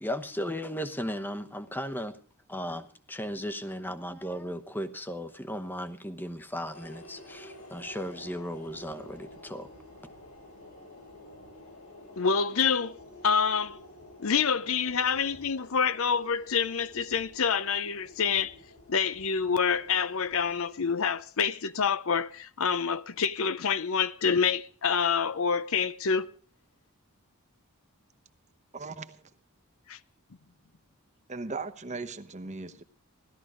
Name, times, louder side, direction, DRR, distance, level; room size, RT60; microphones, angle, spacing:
voice 1, 0.0-2.2 2.5-9.7, equal, 10° left, 1.0 m, -36 dB
sound 1, 6.7-20.6, left 1 dB, 90° left, 5.4 m, -50 dB
voice 2, 12.2-13.0 13.2-13.8 14.2-18.5 18.9-26.3 29.9-30.0, left 6 dB, 65° left, 0.7 m, -27 dB
voice 3, 28.7-29.3 31.3-32.8, right 3 dB, 30° right, 1.0 m, -38 dB
16.5 x 12.5 x 5.0 m
head